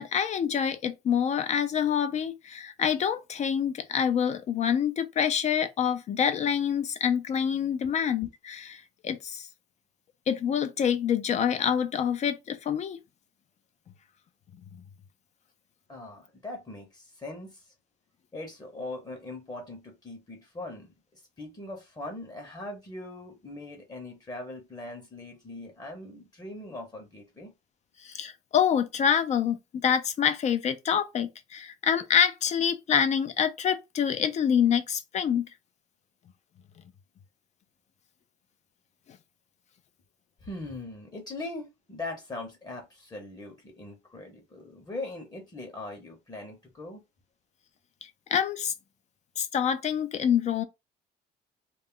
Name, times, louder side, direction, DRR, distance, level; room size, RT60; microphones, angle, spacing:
voice 1, 0.0-9.5 10.3-13.0 28.0-29.6 29.8-35.5 48.0-48.7 49.4-50.6, left 8 dB, 45° left, 0.4 m, -26 dB
voice 2, 15.9-17.7 18.3-27.5 40.4-47.0, left 2 dB, 25° left, 0.8 m, -41 dB
2.3 x 2.0 x 3.6 m
cardioid pair, 110°, 17 cm